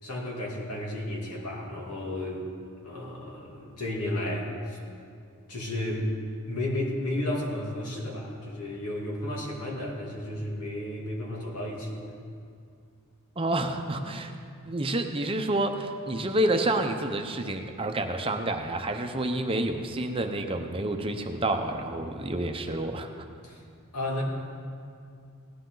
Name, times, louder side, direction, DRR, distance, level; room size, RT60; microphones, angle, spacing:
voice 1, 0.0-2.5 2.8-4.8 5.5-6.1 6.5-12.2 23.4-23.6 23.9-24.2, left 1 dB, 85° left, -2 dB, 2.5 m, -33 dB
voice 2, 13.4-14.3 14.6-23.1, right 1 dB, 25° right, 5 dB, 0.7 m, -29 dB
17.5 x 11.5 x 3.9 m, 2.3 s
head